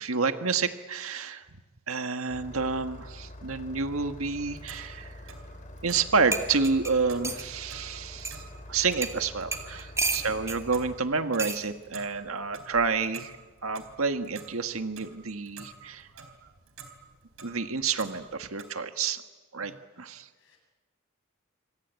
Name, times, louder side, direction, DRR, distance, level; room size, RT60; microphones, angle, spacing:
voice 1, 0.0-1.5 1.9-5.1 5.8-8.4 8.7-13.3 13.6-16.3 17.4-19.2 19.5-19.7 20.0-20.3, right 4 dB, 85° right, 8 dB, 1.7 m, -29 dB
Engine starting, 2.3-11.0, left 1 dB, 40° left, 4.1 m, -45 dB
Clock, 4.3-18.6, right 5 dB, 70° right, 4.0 m, -50 dB
sound 1, 6.3-7.5 8.2-8.4 9.0-9.2 9.5-10.6 11.4-11.6 12.7-13.0, right 3 dB, 15° right, 2.5 m, -31 dB
voice 2, 10.2-10.5 19.6-19.8 20.4-20.6, equal, 65° left, 2 dB, 7.9 m, -55 dB
27.0 x 25.5 x 8.4 m, 1.3 s
head